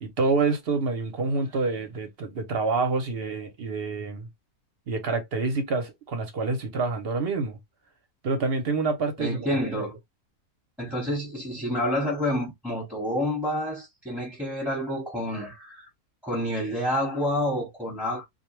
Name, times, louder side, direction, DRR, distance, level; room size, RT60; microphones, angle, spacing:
voice 1, 0.0-4.3 4.9-7.6 8.2-9.5 9.8-9.9, right 3 dB, 50° right, 0.8 m, -27 dB
voice 2, 9.2-10.0 10.8-15.9 16.2-18.2, left 1 dB, ahead, 1.0 m, -28 dB
2.4 x 2.2 x 3.0 m
omnidirectional pair, 1.5 m